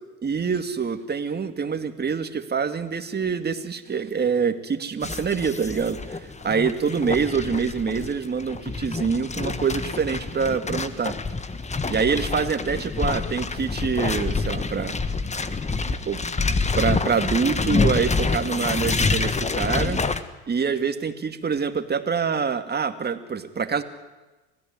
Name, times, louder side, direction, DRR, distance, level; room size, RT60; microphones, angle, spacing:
voice 1, 0.2-11.2 11.9-15.0 15.9-16.2 16.7-20.0 20.5-23.8, right 6 dB, 25° right, 9 dB, 2.3 m, -25 dB
sound 1, 5.0-20.2, left 4 dB, 20° left, 1.6 m, -27 dB
26.0 x 16.5 x 9.7 m, 1.1 s
hypercardioid pair, 75°, 36 cm